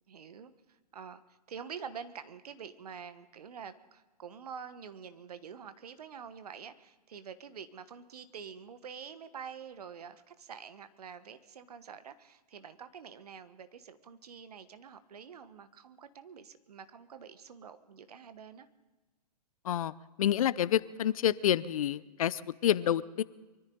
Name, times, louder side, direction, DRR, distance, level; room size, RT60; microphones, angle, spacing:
voice 1, 0.1-1.2 1.5-18.7, right 7 dB, 65° right, 11 dB, 1.4 m, -47 dB
voice 2, 20.2-23.2, left 10 dB, 55° left, 19 dB, 0.7 m, -28 dB
23.5 x 14.0 x 3.9 m, 1.2 s
hypercardioid pair, 125°, 21 cm